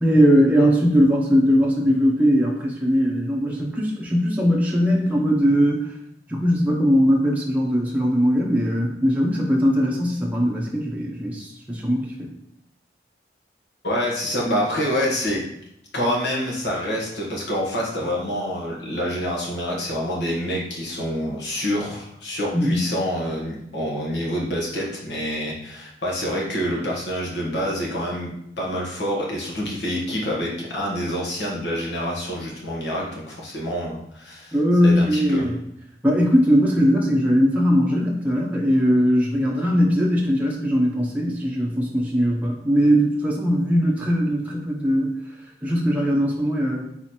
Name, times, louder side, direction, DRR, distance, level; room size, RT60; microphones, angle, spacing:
voice 1, 0.0-6.0 6.3-12.3 22.5-22.9 34.5-35.6 36.0-45.2 45.6-46.8, equal, 10° right, -3 dB, 0.7 m, -20 dB
voice 2, 13.8-15.4 15.9-28.3 28.6-34.6 34.8-35.5, equal, 75° left, -3 dB, 1.4 m, -27 dB
4.1 x 3.1 x 4.2 m, 0.78 s
head